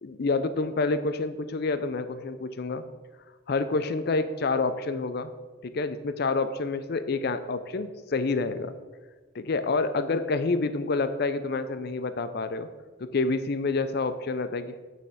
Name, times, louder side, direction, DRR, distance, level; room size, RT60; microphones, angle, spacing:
voice 1, 0.0-2.8 3.5-5.3 5.6-8.7 9.3-12.7 13.0-14.8, left 3 dB, 50° left, 11 dB, 0.4 m, -28 dB
9.1 x 3.3 x 5.5 m, 1.3 s
head